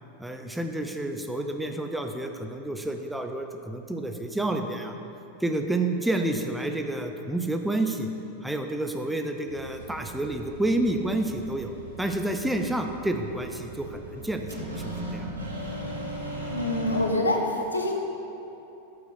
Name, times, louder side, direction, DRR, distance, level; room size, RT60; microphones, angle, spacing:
voice 1, 0.2-4.9 5.4-8.1 8.4-14.5 14.8-15.3, right 1 dB, 5° right, 4 dB, 0.9 m, -29 dB
sound 1, 9.4-17.0, right 1 dB, 80° right, 2.1 m, -38 dB
voice 2, 16.4-17.9, left 1 dB, 80° left, 2 dB, 1.4 m, -26 dB
13.0 x 8.3 x 5.1 m, 2.9 s
figure-of-eight pair, 90°, 0 cm